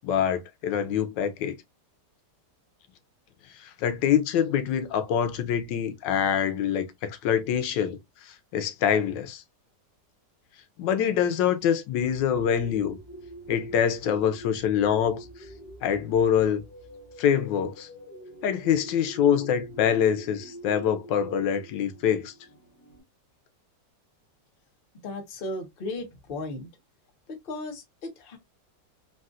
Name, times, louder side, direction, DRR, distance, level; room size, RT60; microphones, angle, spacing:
voice 1, 0.0-1.5 3.6-8.0 8.2-9.4 10.8-13.0 13.5-15.3 15.8-16.6 17.2-17.9 18.4-22.3, left 8 dB, 90° left, 1.3 m, -25 dB
sound 1, 12.0-23.0, right 1 dB, 70° left, 1.6 m, -45 dB
voice 2, 25.0-26.7 27.3-28.4, left 2 dB, 40° left, 0.8 m, -36 dB
3.8 x 2.3 x 2.4 m
omnidirectional pair, 1.9 m